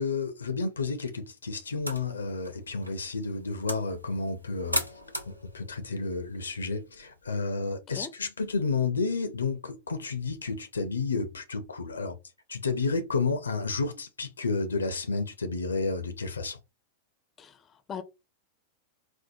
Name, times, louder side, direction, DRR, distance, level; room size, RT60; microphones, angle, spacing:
voice 1, 0.0-4.8 5.3-12.2 12.5-16.6, left 4 dB, 75° left, 0.5 m, -31 dB
sound 1, 1.7-7.3, equal, 90° right, 0.5 m, -38 dB
voice 2, 17.4-18.0, left 7 dB, 25° left, 0.5 m, -40 dB
4.4 x 2.1 x 2.7 m
figure-of-eight pair, 90°, 0 cm